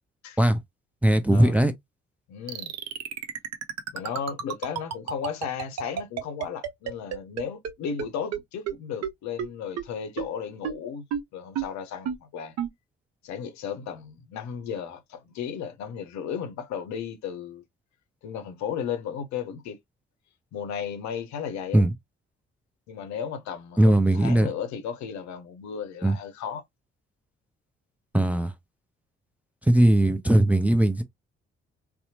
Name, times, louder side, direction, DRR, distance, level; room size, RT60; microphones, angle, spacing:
voice 1, 1.0-1.7 21.7-21.9 23.8-24.5 26.0-26.2 28.1-28.5 29.6-31.0, right 1 dB, 5° right, 0.5 m, -19 dB
voice 2, 2.3-2.7 3.9-11.0 11.3-12.5 13.2-17.6 18.2-19.8 20.5-21.8 22.9-26.6, left 7 dB, 60° left, 0.7 m, -34 dB
sound 1, 2.5-7.7 8.0-8.1 8.3-8.4 8.7-8.8 9.0-9.1 9.4-9.5 9.8-9.9 10.2-10.3 10.6-10.7 11.1-11.2 11.6-11.7 12.1-12.2 12.6-12.7, right 8 dB, 55° right, 0.6 m, -30 dB
2.8 x 2.1 x 2.7 m
hypercardioid pair, 40°, 32 cm